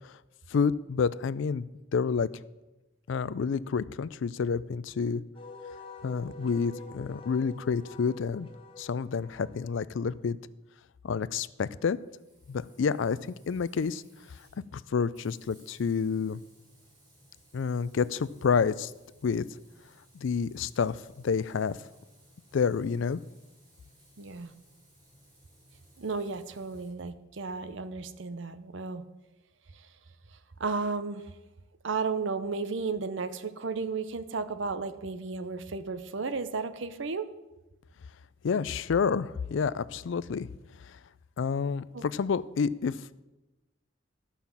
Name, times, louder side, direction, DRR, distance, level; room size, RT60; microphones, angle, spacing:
voice 1, 0.5-1.7 1.9-2.3 3.1-5.2 6.0-8.5 8.8-10.4 11.0-12.0 12.5-14.0 14.7-16.4 17.5-18.9 19.2-19.4 20.1-21.8 22.5-23.2 38.4-40.5 41.4-43.2, left 5 dB, 65° left, 17 dB, 0.4 m, -29 dB
Wind instrument woodwind instrument, 5.4-10.1, left 4 dB, 25° left, 1.1 m, -47 dB
Frying (food), 11.9-26.9, equal, 20° right, 3.4 m, -61 dB
voice 2, 24.2-24.5 26.0-29.0 30.6-31.3 31.8-37.3 41.9-42.0, right 4 dB, 65° right, 12 dB, 0.7 m, -33 dB
12.0 x 5.7 x 7.1 m, 1.1 s
head